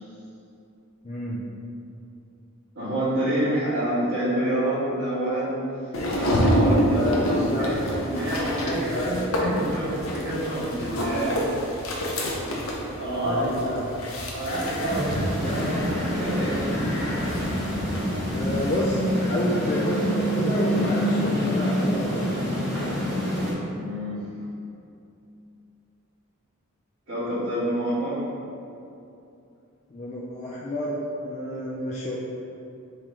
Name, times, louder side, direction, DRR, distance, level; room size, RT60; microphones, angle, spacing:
voice 1, 1.0-1.4 6.9-7.8 8.6-9.2 10.9-11.0 13.2-14.0 18.3-22.4 29.9-32.3, left 1 dB, 30° left, -6 dB, 0.4 m, -29 dB
voice 2, 2.7-5.5 6.1-11.4 13.0-13.7 14.3-16.7 23.7-24.2 27.1-28.2, right 1 dB, 60° right, -15 dB, 1.5 m, -27 dB
sound 1, 5.9-18.8, equal, 70° left, 0.7 m, -28 dB
sound 2, 14.8-23.5, equal, ahead, 1.1 m, -26 dB
4.7 x 2.9 x 3.6 m, 2.7 s
head